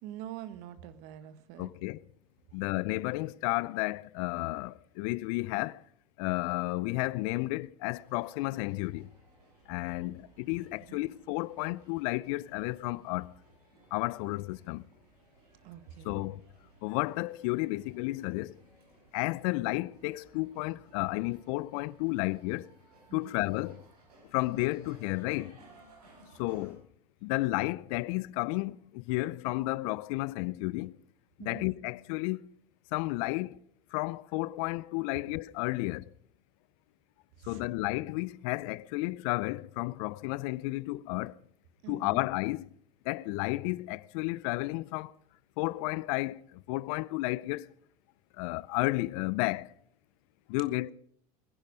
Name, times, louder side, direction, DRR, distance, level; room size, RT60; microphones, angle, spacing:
voice 1, 0.0-1.7 10.9-11.0 15.6-16.2 23.1-23.3 31.4-31.7 37.4-37.6 41.8-42.2, right 11 dB, 65° right, 1.4 m, -45 dB
voice 2, 1.6-2.0 2.5-5.8 6.2-9.1 9.7-13.3 13.9-14.8 16.0-16.4 16.8-18.6 19.1-22.7 23.1-23.8 24.3-25.6 26.4-26.8 27.2-31.0 31.4-32.5 32.9-33.6 33.9-36.1 37.4-41.4 41.9-42.7 43.0-45.1 45.6-47.7 48.4-49.7 50.5-50.9, left 21 dB, 65° left, 0.5 m, -32 dB
sound 1, 7.9-26.7, right 2 dB, 85° right, 6.4 m, -60 dB
21.5 x 10.5 x 5.2 m
hypercardioid pair, 85°, 19 cm